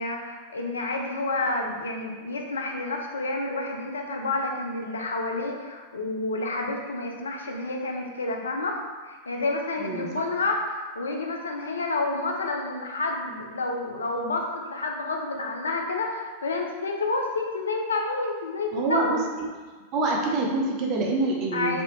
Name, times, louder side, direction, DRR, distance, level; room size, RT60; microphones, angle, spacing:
voice 1, 0.0-19.2 21.5-21.8, left 2 dB, 70° left, 1 dB, 0.4 m, -29 dB
voice 2, 18.7-19.2 19.9-21.8, right 2 dB, 40° right, -1 dB, 0.5 m, -26 dB
3.3 x 2.6 x 2.6 m, 1.4 s
figure-of-eight pair, 90°, 0 cm